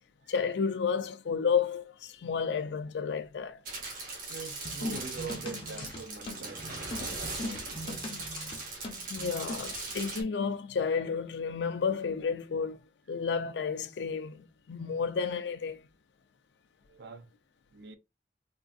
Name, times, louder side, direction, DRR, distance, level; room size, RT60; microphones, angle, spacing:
voice 1, 0.3-3.6 9.1-12.8 13.1-15.8, left 6 dB, 80° left, 0.4 m, -31 dB
sound 1, 3.6-10.2, right 3 dB, 50° right, 1.1 m, -39 dB
voice 2, 4.3-6.7 7.0-8.1 16.9-17.3 17.7-18.0, right 4 dB, 70° right, 0.4 m, -44 dB
sound 2, 4.6-9.7, left 1 dB, 30° left, 0.6 m, -40 dB
3.6 x 2.5 x 2.3 m
head